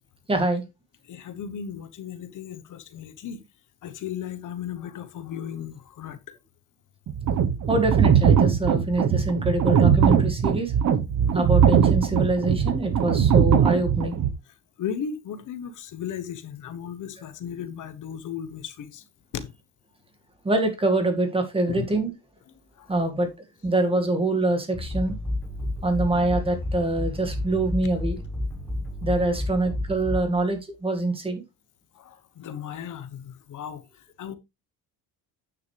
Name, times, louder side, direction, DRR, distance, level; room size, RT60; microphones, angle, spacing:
voice 1, 0.3-0.6 7.7-10.7 11.3-14.2 20.4-22.1 22.9-23.3 23.6-25.2 25.8-28.2 29.0-31.4, right 2 dB, 15° right, 2.1 m, -25 dB
voice 2, 1.1-3.4 3.8-6.2 14.8-19.0 19.3-19.5 21.7-21.9 22.8-22.9 32.0-33.8 34.2-34.3, left 8 dB, 55° left, 1.2 m, -35 dB
sound 1, 7.1-14.3, right 8 dB, 50° right, 1.2 m, -20 dB
sound 2, 24.7-30.6, left 1 dB, 5° left, 1.4 m, -31 dB
9.5 x 6.5 x 3.4 m
cardioid pair, 130°, 36 cm